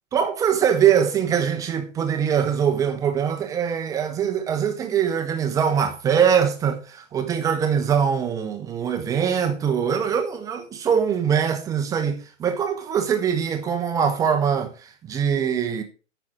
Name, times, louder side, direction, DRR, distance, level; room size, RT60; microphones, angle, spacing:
voice 1, 0.1-15.8, right 8 dB, 10° right, 0.8 m, -22 dB
9.6 x 6.0 x 5.0 m
figure-of-eight pair, 120°, 39 cm